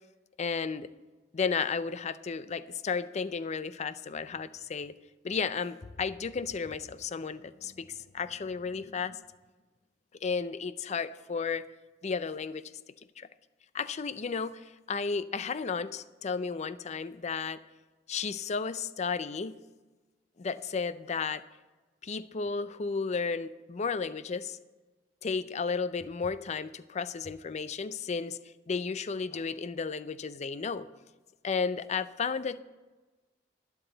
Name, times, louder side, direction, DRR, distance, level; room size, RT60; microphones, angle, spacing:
voice 1, 0.4-0.9 1.3-4.9 5.2-9.2 10.2-11.7 12.0-12.6 13.2-13.3 13.7-17.6 18.1-19.6 20.4-21.4 22.0-24.6 25.2-28.4 28.7-30.9 31.4-32.6, left 5 dB, 40° left, 15 dB, 0.4 m, -33 dB
11.5 x 11.0 x 3.9 m, 1.2 s
head